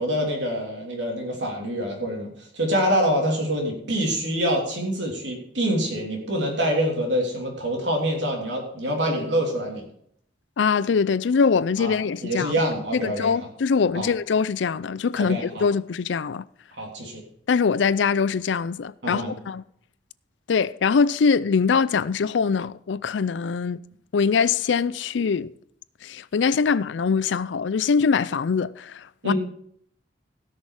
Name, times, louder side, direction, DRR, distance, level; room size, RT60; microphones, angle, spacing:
voice 1, 0.0-9.8 11.8-12.0 12.2-13.3 13.9-14.1 15.2-15.6 16.8-17.2 19.0-19.3 29.2-29.3, equal, 75° right, 3.2 m, -26 dB
voice 2, 10.6-12.5 12.9-16.4 17.5-19.6 20.5-23.8 24.1-25.5 26.0-29.3, left 5 dB, 80° left, 0.4 m, -23 dB
17.0 x 6.4 x 4.8 m
head